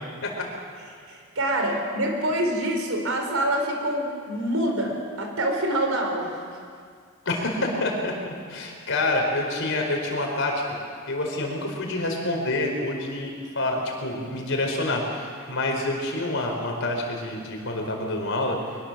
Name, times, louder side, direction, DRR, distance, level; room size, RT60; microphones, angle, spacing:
voice 1, 1.1-6.4, right 1 dB, 75° right, 3 dB, 4.5 m, -26 dB
voice 2, 7.2-8.1 8.5-10.6 11.1-18.6, left 2 dB, 65° left, 1 dB, 4.8 m, -27 dB
23.0 x 20.0 x 7.6 m, 2.1 s
head